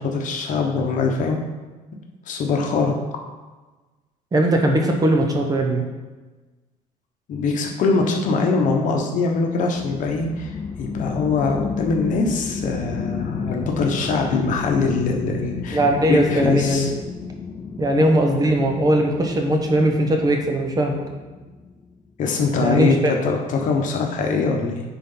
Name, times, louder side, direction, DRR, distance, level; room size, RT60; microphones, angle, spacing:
voice 1, 0.0-1.4 2.3-2.9 7.3-10.5 10.8-15.8 16.1-16.9 22.2-24.8, left 4 dB, 60° left, 1 dB, 1.2 m, -22 dB
voice 2, 4.3-5.8 15.7-16.9 17.8-21.0 22.6-23.1, right 1 dB, 25° right, 2 dB, 1.0 m, -19 dB
sound 1, 9.8-21.8, left 5 dB, 25° left, 0.4 m, -32 dB
9.9 x 3.9 x 3.9 m, 1.2 s
cardioid pair, 125°, 15 cm